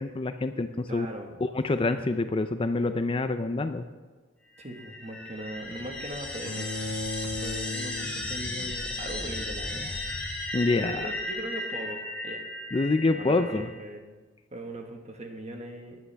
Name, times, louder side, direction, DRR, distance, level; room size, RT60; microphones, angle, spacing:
voice 1, 0.0-1.1 1.4-3.8 10.5-11.1 12.7-13.7, left 3 dB, 25° left, 9 dB, 0.4 m, -26 dB
voice 2, 0.9-1.4 4.6-6.7 7.3-10.0 10.7-12.4 13.0-14.2 14.5-16.0, right 1 dB, 35° right, 3 dB, 1.5 m, -40 dB
sound 1, 4.6-13.8, left 2 dB, 5° left, 2.5 m, -35 dB
Bowed string instrument, 6.4-9.5, left 2 dB, 85° left, 1.0 m, -37 dB
17.0 x 10.5 x 3.4 m, 1.4 s
head